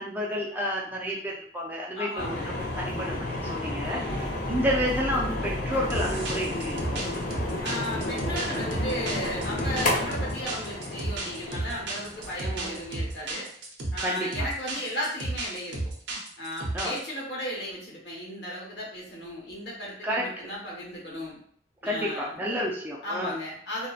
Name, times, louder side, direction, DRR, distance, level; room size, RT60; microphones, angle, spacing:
voice 1, 0.0-7.0 12.4-12.8 14.0-14.5 16.7-17.0 20.0-20.3 21.8-23.3, equal, 10° right, -3 dB, 0.3 m, -30 dB
voice 2, 1.9-2.5 3.9-4.4 7.6-13.5 13.9-15.8 16.4-21.4 21.8-22.4 23.0-23.9, equal, 70° left, -5 dB, 1.1 m, -35 dB
sound 1, 2.2-13.3, left 2 dB, 50° left, 0.5 m, -32 dB
sound 2, 4.0-7.7, equal, 15° left, 1.1 m, -39 dB
sound 3, 5.9-17.1, right 2 dB, 75° right, 0.6 m, -33 dB
2.6 x 2.1 x 2.3 m, 0.63 s
head